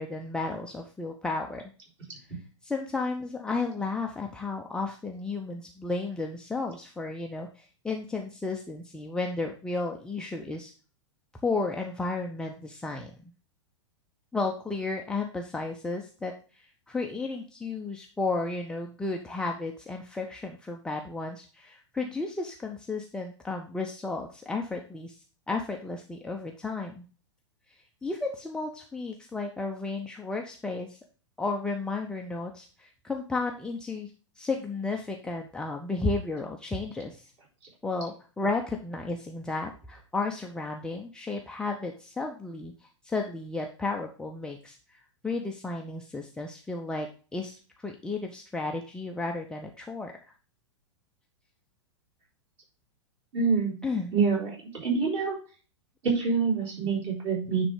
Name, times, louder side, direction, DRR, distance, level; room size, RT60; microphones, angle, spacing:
voice 1, 0.0-1.6 2.6-10.7 11.4-13.1 14.3-25.2 25.5-27.1 28.0-31.0 31.4-34.1 34.4-37.3 37.8-42.7 43.0-50.1 53.8-54.1, left 3 dB, 5° left, 1 dB, 0.6 m, -33 dB
voice 2, 53.3-53.8 54.1-54.5 54.8-55.4 56.0-57.6, right 5 dB, 35° right, -4 dB, 3.9 m, -26 dB
9.7 x 3.4 x 5.0 m, 0.36 s
figure-of-eight pair, 100°, 16 cm